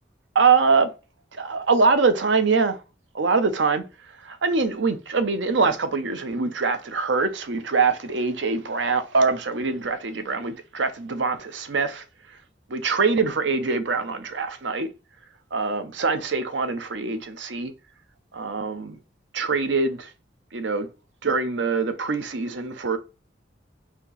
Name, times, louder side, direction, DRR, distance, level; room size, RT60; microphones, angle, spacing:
voice 1, 0.3-0.9 1.3-2.8 3.1-3.8 4.2-12.0 12.7-14.9 15.5-17.7 18.3-19.0 19.3-20.1 20.5-20.9 21.2-23.0, right 4 dB, 75° right, 0.7 m, -23 dB
4.3 x 2.9 x 4.0 m
head